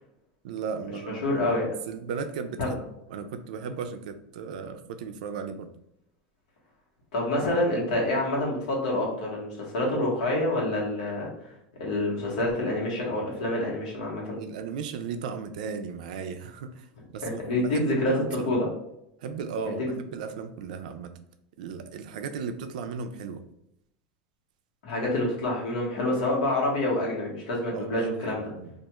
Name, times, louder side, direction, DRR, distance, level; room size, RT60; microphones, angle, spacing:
voice 1, 0.4-1.5 1.9-5.7 14.4-18.5 19.2-21.1 21.6-23.4 27.7-28.7, right 6 dB, 90° right, 9 dB, 0.4 m, -36 dB
voice 2, 1.1-1.8 2.6-2.7 7.1-11.3 11.8-14.4 17.2-18.1 18.5-18.7 19.6-19.9 24.8-28.5, left 1 dB, 85° left, -3 dB, 1.1 m, -27 dB
2.4 x 2.3 x 2.9 m, 0.79 s
supercardioid pair, 170°, 4 cm